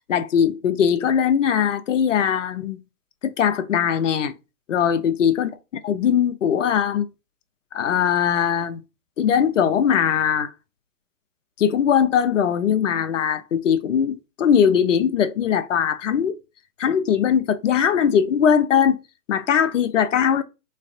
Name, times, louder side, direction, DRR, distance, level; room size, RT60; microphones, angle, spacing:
voice 1, 0.1-2.8 3.2-4.3 4.7-5.5 5.8-7.1 7.7-8.8 9.2-10.5 11.6-16.3 16.8-19.0 19.3-20.4, left 8 dB, 50° left, 0.6 m, -20 dB
3.2 x 2.4 x 3.7 m
hypercardioid pair, 145°, 49 cm